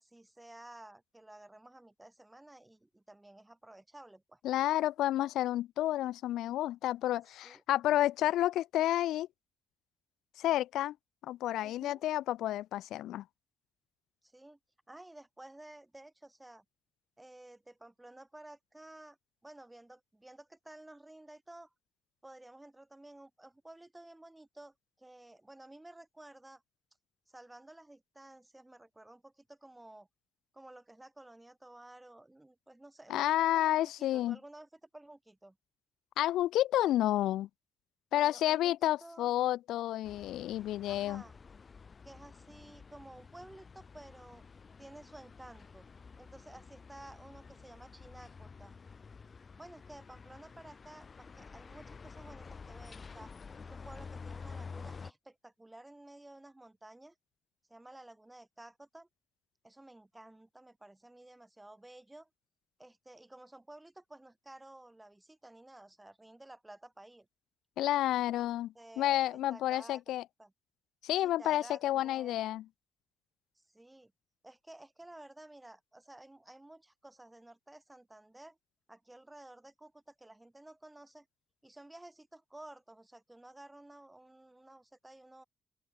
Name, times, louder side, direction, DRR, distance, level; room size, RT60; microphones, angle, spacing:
voice 1, 0.0-4.4 7.4-7.6 11.6-12.0 14.2-14.6 14.9-16.6 17.2-19.2 19.4-21.7 22.2-26.6 27.3-30.1 30.5-35.6 38.1-39.3 40.9-41.4 42.0-44.4 44.8-45.9 46.2-48.8 49.6-53.3 53.7-57.1 57.7-59.1 59.6-62.3 62.8-67.3 68.3-68.5 68.7-70.0 70.4-70.5 71.2-72.4 73.6-74.1 74.4-78.6 78.9-81.3 81.6-85.4, right 1 dB, 10° right, 5.9 m, -53 dB
voice 2, 4.4-9.3 10.4-10.9 11.2-13.2 33.1-34.4 36.2-37.5 38.1-41.2 67.8-70.2 71.0-72.6, left 13 dB, 85° left, 0.7 m, -30 dB
sound 1, 40.0-55.1, left 5 dB, 35° left, 4.8 m, -50 dB
open air
cardioid pair, 90°, 0 cm